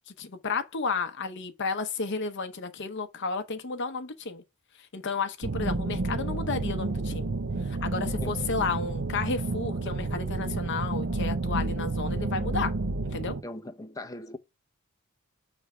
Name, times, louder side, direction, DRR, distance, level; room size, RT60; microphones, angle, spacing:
voice 1, 0.1-4.4 4.8-7.3 7.6-12.7 13.0-13.4, left 4 dB, 55° left, 0.8 m, -32 dB
sound 1, 5.4-13.4, right 3 dB, 55° right, 0.6 m, -30 dB
voice 2, 13.4-14.4, left 1 dB, 15° left, 0.6 m, -39 dB
6.8 x 3.3 x 4.8 m
head